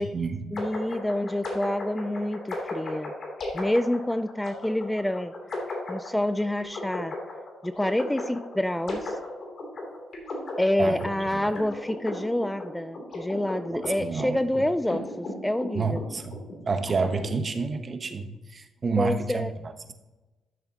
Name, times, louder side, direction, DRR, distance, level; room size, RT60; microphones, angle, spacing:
voice 1, 0.0-0.4 0.9-1.0 10.8-11.5 13.7-14.4 15.7-19.9, right 4 dB, 35° right, 8 dB, 1.0 m, -30 dB
sound 1, 0.5-17.2, left 2 dB, 50° left, 2.9 m, -36 dB
voice 2, 0.5-3.1 3.5-5.3 5.9-7.1 7.6-9.2 10.6-16.0 19.0-19.5, left 1 dB, 5° left, 12 dB, 0.3 m, -27 dB
12.5 x 6.8 x 2.9 m, 1.1 s
cardioid pair, 90°, 0 cm